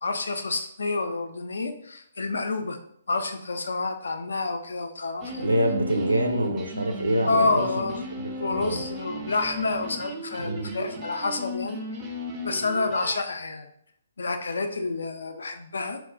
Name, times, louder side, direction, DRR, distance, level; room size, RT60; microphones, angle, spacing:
voice 1, 0.0-2.8 3.1-5.5 7.3-8.0 8.4-11.8 12.4-13.7 14.2-16.0, left 3 dB, 60° left, 6 dB, 0.3 m, -28 dB
sound 1, 5.2-13.2, equal, 20° right, 0.4 m, -36 dB
voice 2, 5.4-7.7 8.2-8.8 10.4-10.8, right 1 dB, 80° right, 4 dB, 0.5 m, -26 dB
2.3 x 2.1 x 3.6 m, 0.70 s
figure-of-eight pair, 130°, 0 cm